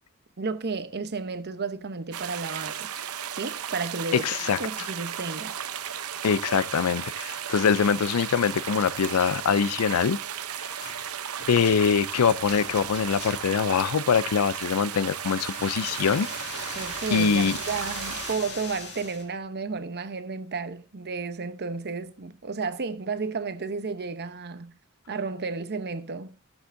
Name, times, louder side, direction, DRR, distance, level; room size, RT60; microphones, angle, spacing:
voice 1, 0.4-2.9 3.3-4.3 4.6-5.6 16.7-24.7 25.1-26.4, right 4 dB, 50° right, 0.8 m, -32 dB
sound 1, 2.1-18.4, right 9 dB, 80° right, 0.7 m, -35 dB
voice 2, 4.1-4.6 6.2-10.2 10.6-10.9 11.5-16.3 17.1-17.6, left 6 dB, 85° left, 0.5 m, -23 dB
sound 2, 10.8-11.0 11.4-13.6 15.0-19.3, left 4 dB, 50° left, 2.4 m, -40 dB
15.5 x 7.2 x 2.6 m
head